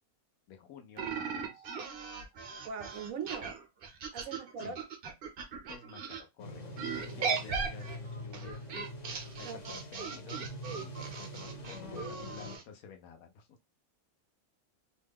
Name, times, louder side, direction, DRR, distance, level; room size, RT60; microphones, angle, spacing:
voice 1, 0.5-1.7 4.3-4.8 5.7-6.6 7.1-8.6 9.4-13.5, left 7 dB, 75° left, 1.1 m, -52 dB
sound 1, 1.0-6.2 6.8-12.6, right 5 dB, 55° right, 0.7 m, -38 dB
voice 2, 2.6-3.6 4.1-4.8 7.1-7.4 9.4-9.7, right 6 dB, 70° right, 1.0 m, -41 dB
sound 2, 6.4-12.6, equal, 40° left, 0.7 m, -44 dB
3.0 x 2.2 x 3.4 m
omnidirectional pair, 1.5 m